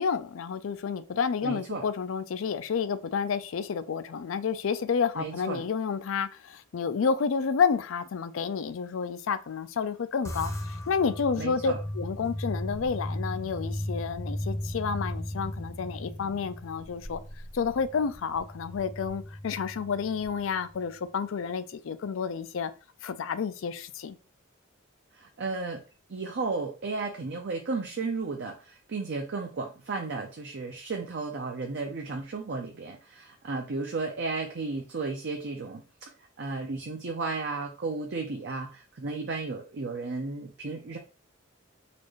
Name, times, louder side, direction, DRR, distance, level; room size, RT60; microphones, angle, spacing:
voice 1, 0.0-17.2 17.5-22.7 23.0-24.2, left 6 dB, 70° left, 0.4 m, -30 dB
voice 2, 1.4-1.8 5.1-5.6 11.4-11.8 25.1-25.8 26.1-36.1 36.4-41.0, right 3 dB, 60° right, 0.6 m, -34 dB
sound 1, 10.3-20.9, left 1 dB, 15° left, 0.7 m, -37 dB
4.2 x 2.5 x 3.1 m
head